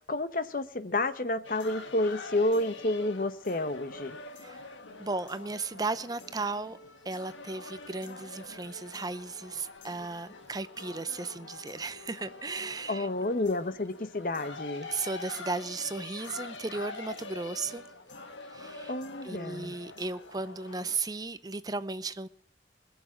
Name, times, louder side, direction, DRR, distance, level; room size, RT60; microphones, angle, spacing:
voice 1, 0.1-4.2 12.9-14.9 18.9-19.8, left 2 dB, 45° left, 12 dB, 0.9 m, -30 dB
Public singing in China, 1.4-21.0, left 3 dB, 85° left, 1.5 m, -45 dB
voice 2, 5.0-6.8 7.0-13.1 14.9-17.8 18.5-18.9 19.2-22.3, right 3 dB, 20° right, 14 dB, 0.6 m, -35 dB
21.0 x 7.1 x 7.5 m, 0.62 s
head